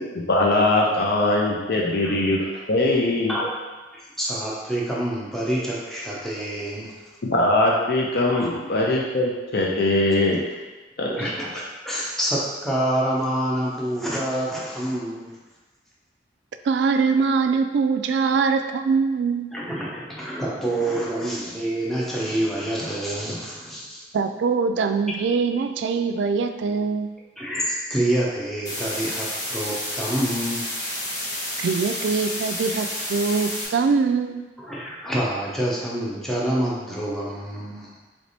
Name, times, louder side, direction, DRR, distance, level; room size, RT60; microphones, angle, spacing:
voice 1, 0.1-3.4 7.2-10.4 11.0-11.1, left 2 dB, 65° left, -2 dB, 0.6 m, -21 dB
voice 2, 3.9-6.9 8.4-8.5 11.0-15.4 18.3-18.4 19.5-24.0 27.4-30.6 34.6-37.9, right 1 dB, ahead, -6 dB, 0.7 m, -27 dB
voice 3, 16.6-19.5 24.1-27.1 31.6-34.5, right 5 dB, 75° right, 8 dB, 0.3 m, -23 dB
sound 1, 28.7-33.7, left 1 dB, 45° left, 1.2 m, -30 dB
3.3 x 3.1 x 4.0 m, 1.2 s
head